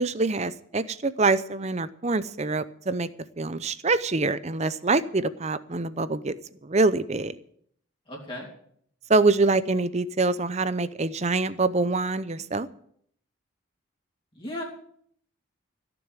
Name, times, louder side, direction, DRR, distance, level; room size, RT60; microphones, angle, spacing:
voice 1, 0.0-3.1 3.4-6.3 6.6-7.4 9.1-12.7, right 3 dB, 30° right, 15 dB, 0.6 m, -25 dB
voice 2, 8.1-8.5 14.3-14.6, left 1 dB, 25° left, -2 dB, 3.0 m, -35 dB
15.5 x 7.0 x 9.0 m, 0.65 s
head